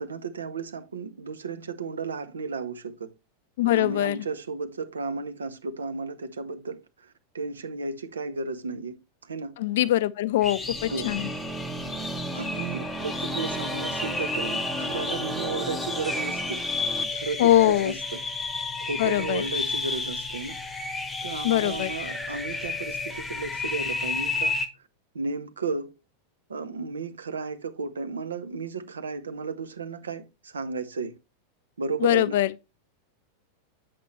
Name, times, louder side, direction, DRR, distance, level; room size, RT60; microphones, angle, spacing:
voice 1, 0.0-3.1 3.6-9.6 10.9-11.1 12.3-16.6 17.1-18.2 18.8-20.6 21.2-24.6 25.1-25.9 26.5-31.1 31.8-32.4, right 4 dB, 70° right, 0.7 m, -34 dB
voice 2, 3.6-4.2 9.6-11.2 17.4-17.9 19.0-19.4 21.4-21.9 32.0-32.5, left 14 dB, 55° left, 0.4 m, -22 dB
sound 1, 10.4-24.7, left 3 dB, 10° left, 1.0 m, -32 dB
sound 2, 10.6-17.0, right 2 dB, 15° right, 1.0 m, -34 dB
8.1 x 5.8 x 3.1 m
figure-of-eight pair, 90°, 0 cm